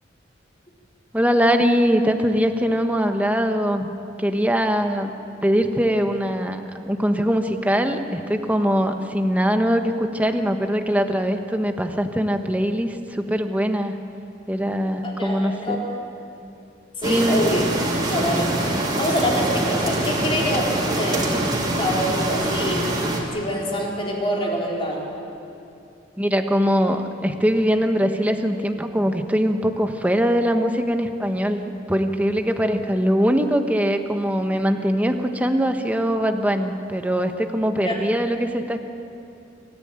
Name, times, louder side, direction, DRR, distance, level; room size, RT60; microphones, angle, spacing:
voice 1, 1.1-3.9 4.2-5.1 5.4-13.9 14.5-15.9 17.1-17.4 26.2-38.8, equal, 10° right, 6 dB, 1.2 m, -22 dB
voice 2, 15.0-16.0 17.0-17.6 18.1-22.9 23.2-25.1 37.8-38.0, equal, 30° left, -2 dB, 4.1 m, -26 dB
sound 1, 17.0-23.2, right 1 dB, 25° right, 3.1 m, -24 dB
26.5 x 14.5 x 9.0 m, 2.7 s
head